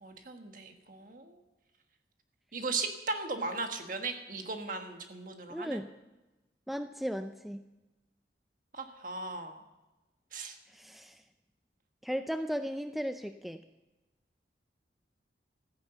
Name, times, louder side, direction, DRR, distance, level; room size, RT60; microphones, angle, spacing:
voice 1, 0.0-1.4 2.5-5.8 8.7-9.6 10.3-10.6, right 3 dB, 50° right, 5 dB, 1.5 m, -37 dB
voice 2, 5.5-5.9 6.7-7.6 10.7-11.2 12.0-13.6, equal, ahead, 7 dB, 0.4 m, -36 dB
14.5 x 10.0 x 6.9 m, 1.1 s
head